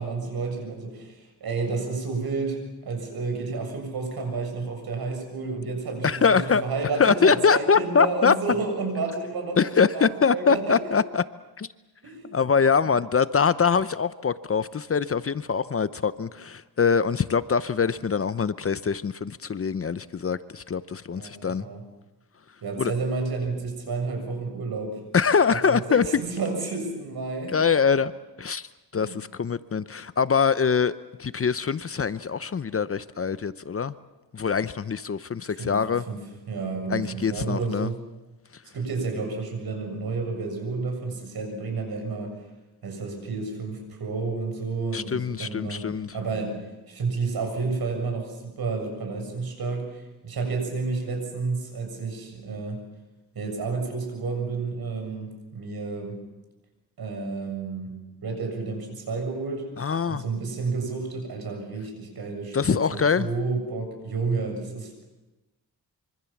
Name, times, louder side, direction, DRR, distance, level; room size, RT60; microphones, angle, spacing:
voice 1, 0.0-10.8 12.0-12.4 12.8-12.9 21.1-21.8 22.6-25.0 25.5-27.6 28.9-29.1 35.6-35.8 36.1-36.2 36.5-38.0 38.7-42.4 42.8-45.8 46.1-46.6 46.9-52.8 53.4-56.2 57.0-59.7 60.0-65.1, right 4 dB, 70° right, 3 dB, 7.3 m, -31 dB
voice 2, 6.0-6.6 7.0-8.3 9.6-11.2 11.6-11.7 12.3-21.6 22.8-22.9 25.1-26.1 27.5-28.1 28.4-28.7 28.9-30.9 31.2-34.0 34.3-36.0 36.9-37.9 44.9-46.1 59.8-60.2 62.5-63.3, left 6 dB, 35° left, 15 dB, 0.7 m, -23 dB
25.5 x 24.5 x 7.2 m, 1.1 s
wide cardioid pair, 115°, 38 cm